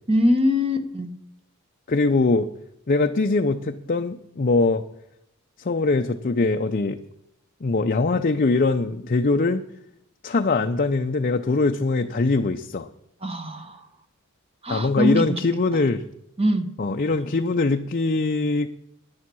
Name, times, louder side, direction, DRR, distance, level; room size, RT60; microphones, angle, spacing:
voice 1, 0.1-1.1 13.2-13.9 14.6-15.4 16.4-16.7, left 1 dB, 25° right, 8 dB, 1.2 m, -22 dB
voice 2, 1.9-2.5 2.9-4.8 5.6-7.0 7.6-9.6 10.2-12.9 14.7-16.0 16.8-18.7, left 3 dB, 40° left, 5 dB, 0.6 m, -22 dB
10.5 x 10.0 x 6.2 m, 0.78 s
head